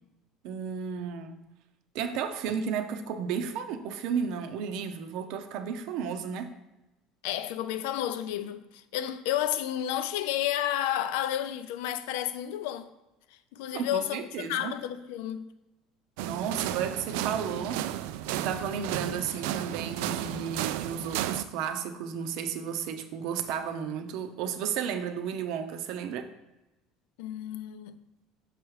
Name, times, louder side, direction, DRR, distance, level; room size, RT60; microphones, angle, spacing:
voice 1, 0.4-1.4 1.9-6.5 13.7-14.7 16.2-17.8 18.3-26.3, right 7 dB, 55° right, 0.7 m, -33 dB
voice 2, 7.2-12.9 13.5-15.5 27.2-28.0, left 11 dB, 85° left, 0.5 m, -31 dB
sound 1, 16.2-21.4, right 12 dB, 85° right, 0.3 m, -33 dB
6.7 x 4.9 x 4.7 m
cardioid pair, 175°, 0 cm